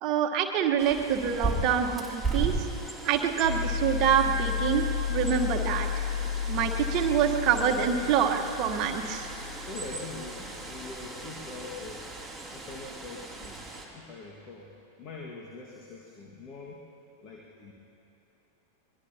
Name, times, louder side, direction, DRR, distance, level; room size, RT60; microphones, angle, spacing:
voice 1, 0.0-2.6 3.0-5.9 6.5-9.3, right 8 dB, 35° right, 3 dB, 1.3 m, -26 dB
Bird, 0.8-13.9, right 3 dB, ahead, 3.0 m, -37 dB
sound 1, 3.4-11.5, left 8 dB, 90° left, 0.7 m, -33 dB
voice 2, 9.7-12.1 12.5-13.6 13.9-14.7 15.0-16.8 17.2-17.7, left 3 dB, 35° left, -2 dB, 1.8 m, -43 dB
23.5 x 21.5 x 2.9 m, 3.0 s
figure-of-eight pair, 90°, 0 cm